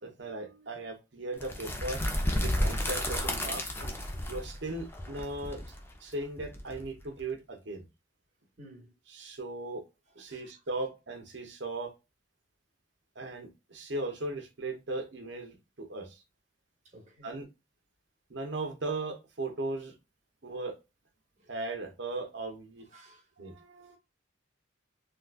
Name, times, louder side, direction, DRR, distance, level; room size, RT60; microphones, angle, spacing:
voice 1, 0.0-2.0 2.4-3.9 4.3-5.7 6.0-7.9 9.1-9.8 10.2-11.9 13.2-16.2 17.2-17.5 18.3-19.9 20.4-20.8 21.5-22.9 23.4-24.0, right 2 dB, 60° right, 0.8 m, -37 dB
sound 1, 1.4-7.2, left 1 dB, 10° left, 0.5 m, -32 dB
voice 2, 8.6-8.9 10.3-10.5 16.8-17.4 21.4-21.5 22.9-23.2, right 1 dB, 40° right, 1.3 m, -54 dB
3.7 x 2.3 x 2.4 m
head